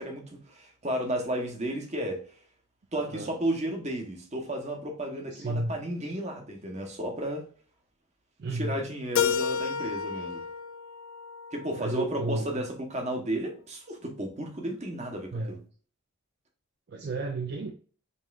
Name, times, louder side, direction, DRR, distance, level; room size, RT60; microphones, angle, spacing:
voice 1, 0.0-2.2 2.9-7.4 8.6-10.4 11.5-15.6, right 1 dB, 30° right, 2 dB, 0.9 m, -33 dB
voice 2, 3.0-3.3 5.3-5.7 8.4-8.8 11.8-12.7 15.3-15.6 16.9-17.7, right 2 dB, 50° right, 4 dB, 0.4 m, -32 dB
Keyboard (musical), 9.2-12.1, left 7 dB, 70° left, 0.4 m, -31 dB
5.4 x 3.1 x 2.4 m, 0.41 s
head